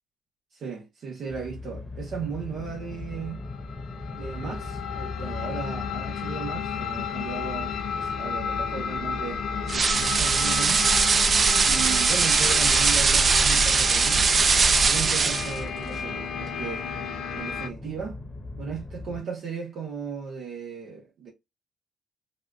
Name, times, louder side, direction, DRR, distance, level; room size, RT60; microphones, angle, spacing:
voice 1, 0.5-3.4 4.1-10.9 11.7-14.3 14.7-16.9 17.3-18.2 18.6-21.3, right 6 dB, 65° right, 1.1 m, -36 dB
sound 1, 1.3-19.2, left 2 dB, 20° left, 1.0 m, -39 dB
sound 2, 2.9-17.7, left 7 dB, 75° left, 0.6 m, -33 dB
sound 3, 9.7-15.6, right 4 dB, 40° right, 0.5 m, -21 dB
4.1 x 2.4 x 2.4 m
cardioid pair, 90°, 0 cm